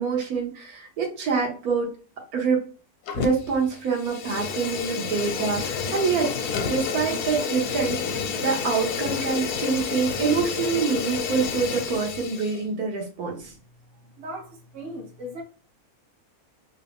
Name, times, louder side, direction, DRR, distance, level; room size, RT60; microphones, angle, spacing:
voice 1, 0.0-1.9 2.3-2.7 3.2-13.5, right 5 dB, 75° right, 1.3 m, -26 dB
Fire, 3.1-3.6 3.9-12.6, left 6 dB, 85° left, 1.2 m, -29 dB
voice 2, 14.2-15.4, equal, 45° right, 1.0 m, -37 dB
3.2 x 2.5 x 3.4 m
omnidirectional pair, 1.6 m